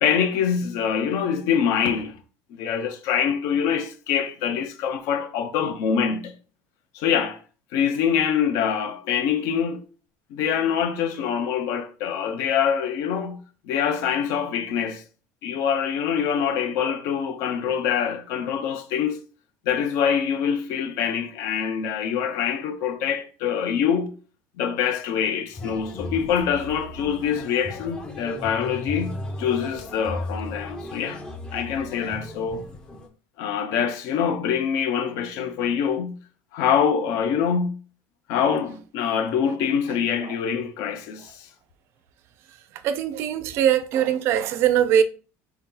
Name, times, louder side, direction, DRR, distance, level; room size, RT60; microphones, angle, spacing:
voice 1, 0.0-2.2 2.5-6.3 6.9-7.4 7.7-9.9 10.3-13.4 13.7-15.0 15.4-19.2 19.7-24.1 24.6-29.1 29.4-31.2 31.5-32.7 33.4-36.2 36.5-37.8 38.3-41.5, left 7 dB, 55° left, 0.6 m, -25 dB
sound 1, 25.5-33.1, left 1 dB, 15° left, 0.6 m, -35 dB
voice 2, 42.8-45.0, right 9 dB, 40° right, 0.4 m, -21 dB
4.4 x 2.8 x 3.7 m
cardioid pair, 180°, 6 cm